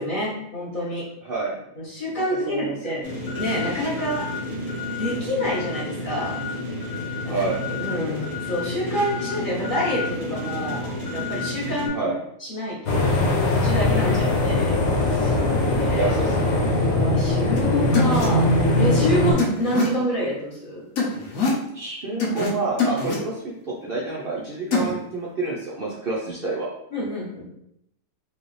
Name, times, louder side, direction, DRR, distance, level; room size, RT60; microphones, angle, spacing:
voice 1, 0.0-1.1 1.8-3.1 3.4-4.3 5.0-6.4 7.3-7.4 7.8-12.1 12.4-14.8 15.0-15.4 15.7-16.2 16.9-18.4 18.8-20.8 26.9-27.5, equal, 35° left, -7 dB, 1.2 m, -27 dB
voice 2, 1.2-1.6 2.1-2.9 7.2-7.8 11.9-12.1 16.0-16.7 21.7-26.7, right 3 dB, 60° right, -4 dB, 0.6 m, -29 dB
sound 1, 3.0-11.9, left 2 dB, 20° left, 1.5 m, -30 dB
sound 2, 12.9-19.3, left 2 dB, 80° left, 1.5 m, -21 dB
sound 3, 17.6-17.7 17.9-18.3 19.4-19.8 21.0-21.6 22.2-22.5 22.8-23.2 24.7-24.9, left 4 dB, 60° left, 1.2 m, -23 dB
4.6 x 2.6 x 3.2 m, 0.77 s
omnidirectional pair, 1.7 m